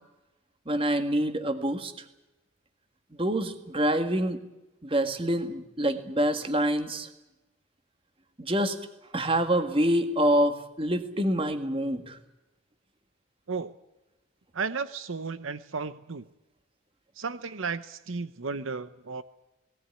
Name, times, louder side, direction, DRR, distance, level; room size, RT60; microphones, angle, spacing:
voice 1, 0.7-1.9 3.2-4.4 4.8-7.1 8.4-8.8 9.1-12.2, right 1 dB, 25° right, 8 dB, 1.8 m, -26 dB
voice 2, 14.5-16.2 17.2-19.2, right 4 dB, 75° right, 14 dB, 0.8 m, -34 dB
19.0 x 18.0 x 9.8 m, 0.98 s
head